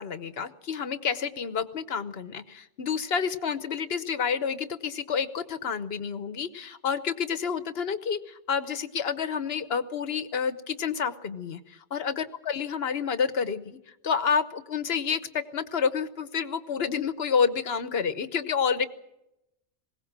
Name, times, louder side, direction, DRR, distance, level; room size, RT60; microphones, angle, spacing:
voice 1, 0.0-13.8 14.0-18.8, left 6 dB, 55° left, 12 dB, 1.2 m, -29 dB
21.0 x 17.5 x 7.4 m, 0.86 s
omnidirectional pair, 1.3 m